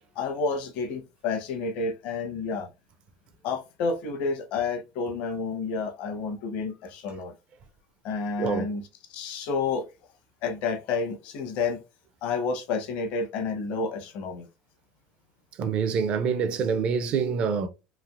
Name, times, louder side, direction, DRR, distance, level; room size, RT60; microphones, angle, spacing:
voice 1, 0.2-2.7 3.4-7.3 8.0-8.8 9.1-9.9 10.4-11.8 12.2-14.5, left 4 dB, 65° left, 0.9 m, -30 dB
voice 2, 8.4-8.7 15.6-17.7, right 6 dB, 50° right, 0.5 m, -26 dB
3.2 x 2.5 x 2.5 m
supercardioid pair, 90°, 2 cm